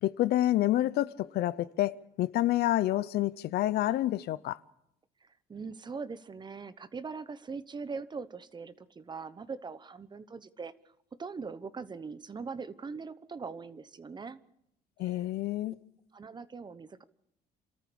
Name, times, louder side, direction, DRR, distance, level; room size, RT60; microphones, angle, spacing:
voice 1, 0.0-4.6 15.0-15.8, left 14 dB, 70° left, 0.7 m, -28 dB
voice 2, 5.2-10.7 11.2-14.4 15.1-15.2 16.1-17.0, right 5 dB, 25° right, 1.0 m, -41 dB
28.5 x 13.5 x 6.9 m
cardioid pair, 110°, 17 cm